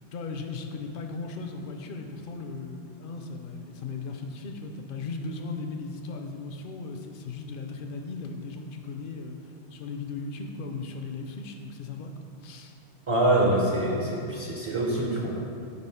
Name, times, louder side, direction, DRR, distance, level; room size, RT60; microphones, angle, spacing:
voice 1, 0.1-9.4 9.7-12.1 12.4-12.7, left 3 dB, 60° left, 4 dB, 0.6 m, -37 dB
voice 2, 13.1-15.4, right 1 dB, 40° right, -2 dB, 0.5 m, -25 dB
4.8 x 4.1 x 5.4 m, 2.5 s
omnidirectional pair, 1.2 m